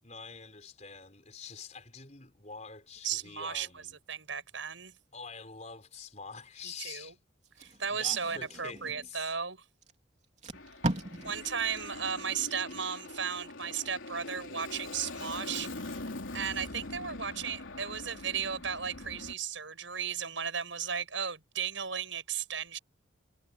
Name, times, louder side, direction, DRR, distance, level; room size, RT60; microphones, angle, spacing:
voice 1, 0.0-4.0 5.1-7.2 7.6-9.3, left 5 dB, 35° left, 5.0 m, -46 dB
voice 2, 3.0-3.7 4.1-4.9 6.8-7.1 7.6-9.6 11.2-16.0 16.3-22.8, right 7 dB, 75° right, 6.6 m, -35 dB
Packing tape duct tape, 7.4-9.1 9.8-9.9 10.2-13.2 13.6-13.9, right 1 dB, 35° right, 3.4 m, -39 dB
Aircraft, 10.5-19.3, left 2 dB, 85° left, 3.6 m, -43 dB
head